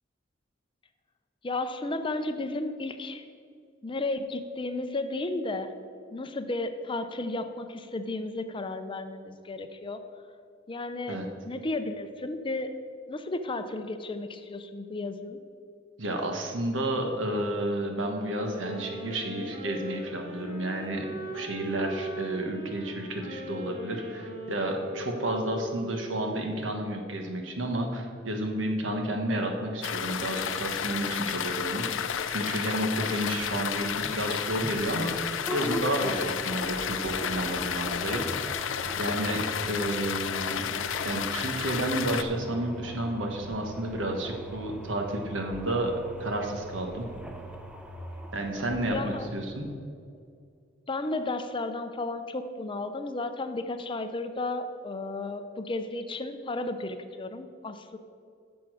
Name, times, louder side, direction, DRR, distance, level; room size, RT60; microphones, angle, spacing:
voice 1, 1.4-3.2 3.8-5.7 6.1-10.0 10.7-11.2 11.5-12.7 13.1-15.4 48.9-49.3 50.9-58.0, left 2 dB, 25° left, 9 dB, 0.5 m, -33 dB
voice 2, 16.0-38.4 39.0-40.7 41.0-45.9 46.2-47.1 48.3-49.7, right 1 dB, 85° right, 3 dB, 1.3 m, -31 dB
sound 1, 18.1-26.3, right 1 dB, 30° right, 1.7 m, -40 dB
sound 2, 29.8-42.2, left 8 dB, 90° left, 0.5 m, -32 dB
sound 3, 33.7-49.3, right 1 dB, 5° right, 0.8 m, -42 dB
11.0 x 7.1 x 4.9 m, 2.3 s
head